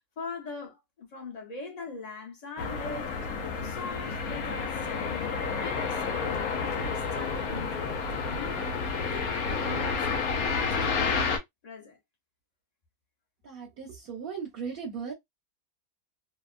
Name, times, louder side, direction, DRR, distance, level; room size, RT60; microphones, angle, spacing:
voice 1, 0.2-3.2 3.4-8.7 9.1-11.4 11.6-12.0, left 4 dB, 35° left, 0.8 m, -41 dB
sound 1, 2.6-11.4, left 5 dB, 75° left, 1.2 m, -30 dB
voice 2, 13.4-15.1, right 6 dB, 45° right, 0.8 m, -37 dB
2.8 x 2.2 x 2.4 m
omnidirectional pair, 1.6 m